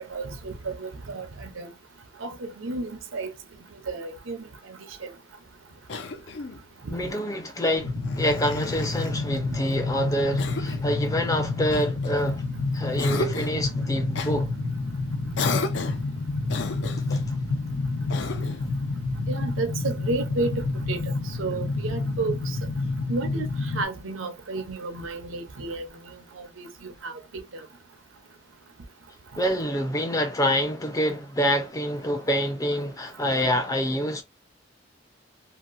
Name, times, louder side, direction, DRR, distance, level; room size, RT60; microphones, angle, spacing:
voice 1, 0.0-1.7 2.2-3.3 3.9-5.1 6.8-7.0 19.3-22.6 23.1-25.9 26.4-27.6, right 3 dB, 90° right, 0.7 m, -32 dB
Cough, 5.9-6.7 8.0-9.2 10.4-10.9 11.7-12.5 13.0-13.6 14.1-14.4 15.4-16.1 16.5-17.3 18.1-18.7, left 3 dB, 65° left, 0.5 m, -33 dB
voice 2, 6.9-12.4 12.7-14.5 17.1-17.2 29.4-34.2, equal, 15° left, 0.5 m, -26 dB
sound 1, 7.8-23.8, left 3 dB, 85° left, 1.1 m, -29 dB
2.8 x 2.5 x 2.5 m
head